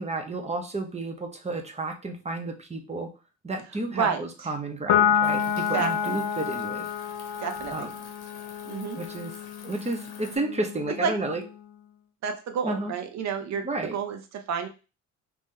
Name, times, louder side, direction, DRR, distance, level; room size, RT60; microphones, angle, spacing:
voice 1, 0.0-3.1 3.4-6.9 7.7-7.9 9.0-9.3 9.6-11.4 12.6-12.9 13.5-14.0, right 2 dB, 20° right, 4 dB, 0.8 m, -32 dB
voice 2, 3.9-4.2 5.6-6.2 7.4-7.9 8.6-9.0 11.0-11.1 12.2-14.2 14.5-14.7, right 6 dB, 65° right, 6 dB, 0.8 m, -30 dB
Piano, 4.9-11.6, left 8 dB, 85° left, 0.6 m, -29 dB
sound 1, 5.2-10.4, left 5 dB, 60° left, 1.1 m, -48 dB
3.0 x 2.7 x 3.7 m, 0.31 s
cardioid pair, 90°, 30 cm